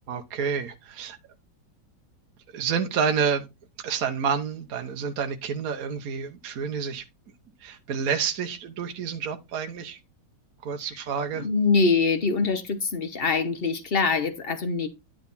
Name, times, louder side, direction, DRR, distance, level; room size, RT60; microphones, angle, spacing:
voice 1, 0.1-1.2 2.5-3.5 3.8-7.0 7.6-10.0 10.6-11.5, right 6 dB, 55° right, 1.2 m, -29 dB
voice 2, 11.3-14.9, left 4 dB, 45° left, 0.8 m, -24 dB
10.5 x 4.7 x 4.0 m
omnidirectional pair, 2.3 m